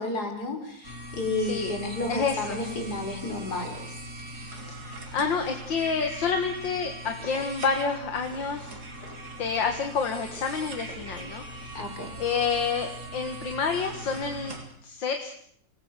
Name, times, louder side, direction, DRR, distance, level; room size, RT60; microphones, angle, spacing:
voice 1, 0.0-4.0 11.7-12.2, left 2 dB, 60° left, 5 dB, 4.4 m, -32 dB
sound 1, 0.8-14.6, right 1 dB, 55° right, 4.0 m, -41 dB
voice 2, 1.4-1.8 2.1-2.6 4.6-4.8 5.1-8.8 9.4-11.8 12.2-14.6 14.8-15.3, left 5 dB, 90° left, 6 dB, 2.4 m, -29 dB
sound 2, 6.6-7.7 8.3-9.9 10.3-11.7, left 1 dB, 20° left, 4.4 m, -49 dB
27.0 x 19.5 x 6.8 m, 0.65 s
omnidirectional pair, 2.0 m